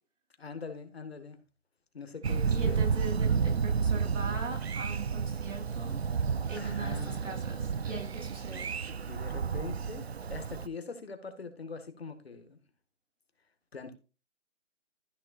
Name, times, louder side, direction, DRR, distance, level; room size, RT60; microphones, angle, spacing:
voice 1, 0.4-1.4 1.9-2.9 6.5-7.2 9.0-12.6 13.7-13.9, left 4 dB, 55° left, 1.8 m, -43 dB
Thunder, 2.2-10.7, right 6 dB, 60° right, 0.6 m, -31 dB
voice 2, 2.5-6.0 6.5-8.7, right 3 dB, 85° right, 3.5 m, -40 dB
14.0 x 6.9 x 2.5 m
hypercardioid pair, 175°, 37 cm